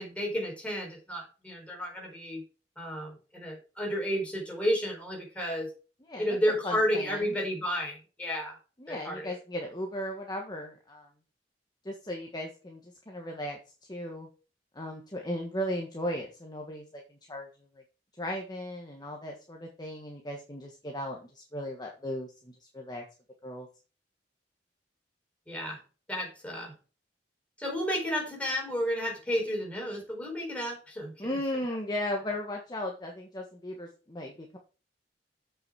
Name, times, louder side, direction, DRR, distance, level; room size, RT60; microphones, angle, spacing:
voice 1, 0.0-2.4 2.8-5.7 6.2-8.6 8.9-9.3 25.5-25.8 26.1-26.7 27.6-31.3, equal, 10° left, 0 dB, 4.4 m, -32 dB
voice 2, 6.6-7.4 8.8-11.1 11.8-13.6 13.9-14.3 14.7-17.5 18.2-23.0 23.4-23.7 31.2-34.6, left 1 dB, 25° left, 1 dB, 1.4 m, -36 dB
8.1 x 6.4 x 4.7 m, 0.34 s
head